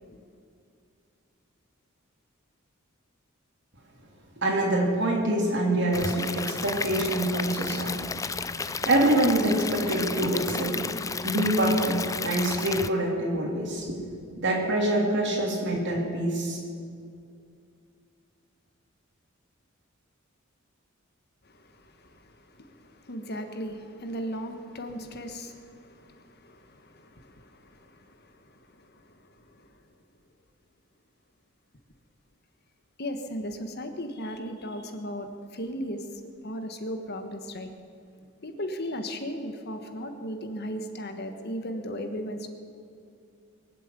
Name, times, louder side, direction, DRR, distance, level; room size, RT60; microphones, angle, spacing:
voice 1, 4.4-10.9 11.2-16.6, right 1 dB, 60° right, -1 dB, 3.3 m, -26 dB
Stream / Liquid, 5.9-12.9, left 4 dB, 15° left, 0.4 m, -33 dB
voice 2, 21.4-29.7 33.0-36.0 36.4-37.7 38.4-42.5, equal, 50° left, 6 dB, 1.3 m, -37 dB
23.0 x 7.7 x 8.2 m, 2.3 s
head